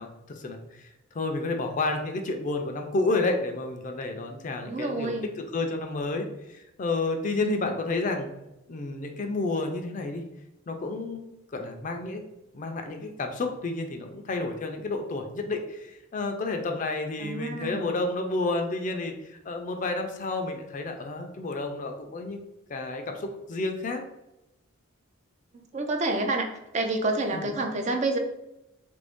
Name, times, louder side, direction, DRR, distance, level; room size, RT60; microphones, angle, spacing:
voice 1, 0.0-5.1 5.5-8.3 8.7-10.2 10.7-12.2 12.5-22.4 22.7-24.0 27.3-27.5, left 3 dB, 40° left, 4 dB, 0.4 m, -30 dB
voice 2, 4.6-5.3 7.4-7.7 17.2-17.9 25.5-26.5 26.7-28.2, right 2 dB, 35° right, 4 dB, 0.4 m, -28 dB
3.2 x 2.6 x 3.5 m, 0.92 s
head